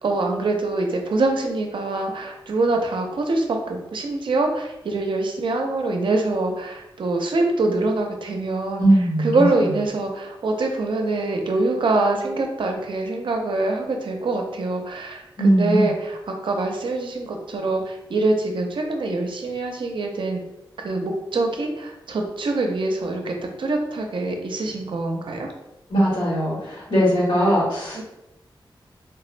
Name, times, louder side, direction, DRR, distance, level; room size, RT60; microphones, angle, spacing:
voice 1, 0.0-8.8 9.2-20.4 20.8-25.5 27.9-28.0, right 2 dB, 70° right, 2 dB, 0.4 m, -24 dB
voice 2, 8.8-9.5 15.4-15.9 25.9-28.0, equal, 85° left, -7 dB, 1.3 m, -19 dB
3.3 x 2.1 x 2.4 m, 0.93 s
wide cardioid pair, 140°, 9 cm